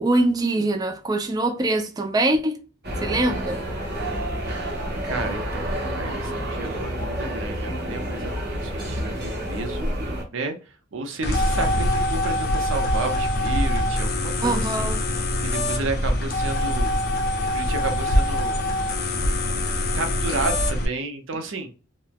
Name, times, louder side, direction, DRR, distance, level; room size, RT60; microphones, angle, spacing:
voice 1, 0.0-2.6 3.0-3.6 14.4-15.0, right 2 dB, 20° right, 0.3 m, -23 dB
sound 1, 2.8-10.2, equal, 50° right, 1.1 m, -29 dB
voice 2, 3.9-9.9 10.3-10.6 10.9-14.9 15.4-17.0 17.5-18.6 19.9-21.7, right 3 dB, 70° right, 0.6 m, -32 dB
sound 2, 11.2-20.9, left 1 dB, 45° left, 0.5 m, -24 dB
3.0 x 2.0 x 2.3 m
head